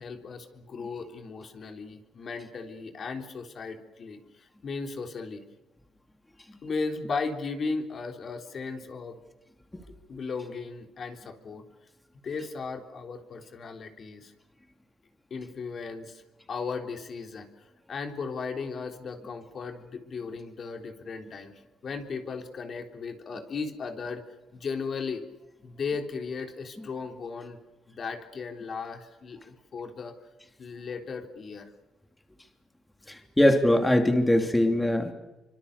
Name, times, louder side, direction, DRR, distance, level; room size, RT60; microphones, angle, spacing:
voice 1, 0.0-5.4 6.6-9.2 10.1-11.6 12.2-14.3 15.3-16.2 16.5-17.5 17.9-21.5 21.8-24.2 24.5-25.3 25.6-27.6 27.9-30.2 30.6-31.7, left 4 dB, 50° left, 5 dB, 3.6 m, -36 dB
voice 2, 33.1-35.1, left 1 dB, 10° left, 5 dB, 3.1 m, -22 dB
26.5 x 25.0 x 6.9 m, 1.0 s
cardioid pair, 90°, 0 cm